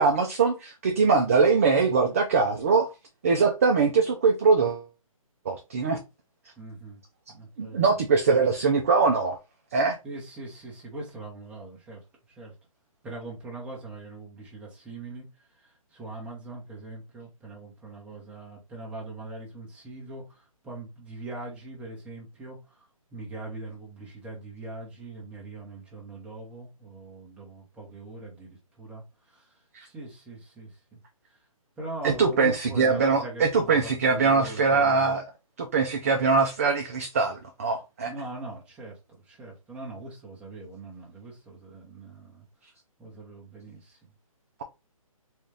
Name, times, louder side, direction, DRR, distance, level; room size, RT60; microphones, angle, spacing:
voice 1, 0.0-2.9 3.2-4.9 5.5-6.0 7.6-9.4 9.7-10.0 29.7-29.9 32.0-35.2 35.6-38.1, right 4 dB, 25° right, 0.4 m, -22 dB
voice 2, 6.6-7.0 7.3-7.9 10.0-12.0 12.3-12.5 13.0-31.0 31.3-31.4 31.8-35.1 38.0-42.4 43.0-44.0, right 2 dB, 5° right, 0.9 m, -41 dB
4.0 x 2.3 x 3.2 m
hypercardioid pair, 160°, 18 cm